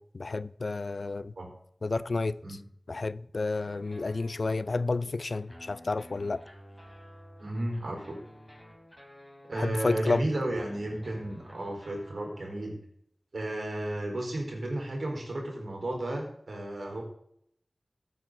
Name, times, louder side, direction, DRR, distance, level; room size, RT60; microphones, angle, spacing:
voice 1, 0.0-1.3 1.8-2.4 2.9-6.4 9.6-10.2, left 3 dB, 75° left, 0.5 m, -30 dB
sound 1, 3.5-12.7, equal, 5° left, 4.1 m, -52 dB
voice 2, 7.4-8.2 9.4-12.8 13.3-17.0, right 1 dB, 85° right, 4.3 m, -33 dB
15.0 x 9.0 x 3.9 m
wide cardioid pair, 60°, 0 cm